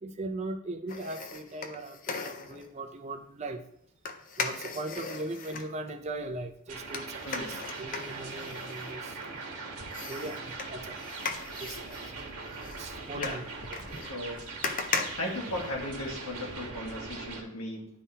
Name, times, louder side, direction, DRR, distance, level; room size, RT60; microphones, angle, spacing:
voice 1, 0.0-3.6 4.4-7.1 7.4-9.2 10.1-10.4 10.7-11.0 11.6-12.0 12.5-13.4, right 2 dB, 30° right, 5 dB, 0.5 m, -39 dB
sound 1, 0.9-2.7 4.0-5.7 6.9-9.5 9.9-16.1 16.5-16.6, left 4 dB, 40° left, 0.5 m, -38 dB
sound 2, 6.7-17.4, right 3 dB, 90° right, 1.4 m, -41 dB
voice 2, 7.2-7.5 13.1-13.4 14.0-14.4 15.2-17.9, left 1 dB, 90° left, -1 dB, 1.6 m, -36 dB
11.0 x 3.7 x 2.8 m, 0.70 s
head